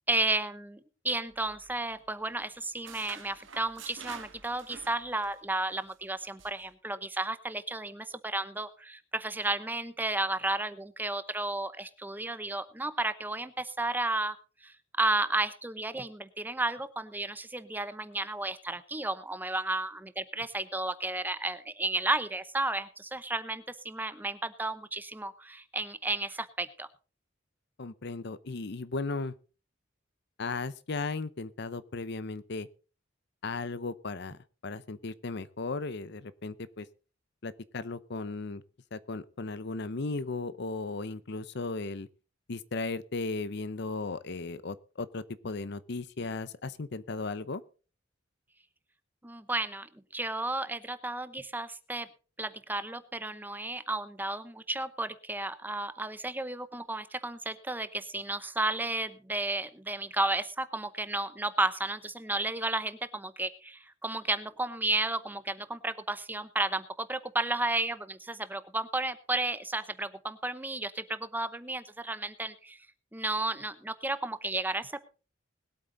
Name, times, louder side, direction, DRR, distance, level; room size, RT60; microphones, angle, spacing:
voice 1, 0.1-14.4 14.6-26.9 49.2-52.1 52.4-72.8 73.1-75.0, right 2 dB, 10° right, 12 dB, 0.8 m, -33 dB
sound 1, 1.3-2.1 2.4-5.4 5.7-5.9 6.4-6.6, right 6 dB, 75° right, 1.7 m, -48 dB
voice 2, 27.8-29.3 30.4-32.7 33.4-36.9 37.4-38.6 38.9-42.1 42.5-47.6, left 3 dB, 60° left, 16 dB, 0.7 m, -36 dB
20.5 x 8.4 x 3.9 m, 0.35 s
head